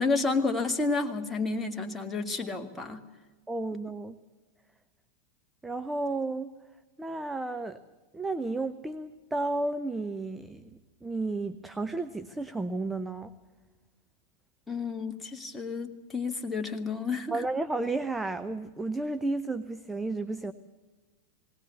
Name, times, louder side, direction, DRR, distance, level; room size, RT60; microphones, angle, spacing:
voice 1, 0.0-3.1 14.7-17.4, left 4 dB, 10° left, 4 dB, 1.9 m, -30 dB
voice 2, 3.5-4.2 5.6-6.5 7.0-7.8 8.1-13.3 17.3-20.5, right 2 dB, 10° right, 10 dB, 0.8 m, -32 dB
20.0 x 18.5 x 8.4 m, 1.2 s
figure-of-eight pair, 90°, 0 cm